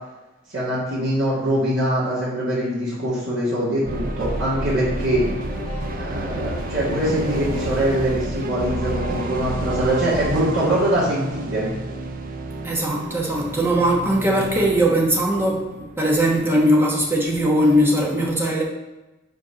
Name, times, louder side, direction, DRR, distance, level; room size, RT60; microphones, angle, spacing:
voice 1, 0.5-5.3 5.9-11.7, right 1 dB, 75° right, -10 dB, 2.1 m, -23 dB
sound 1, 3.8-16.6, right 1 dB, 45° right, 0.6 m, -31 dB
sound 2, 4.0-10.9, right 1 dB, 5° left, 2.3 m, -35 dB
voice 2, 12.6-18.6, right 1 dB, 10° right, -2 dB, 1.1 m, -20 dB
5.2 x 4.6 x 5.7 m, 1.0 s
head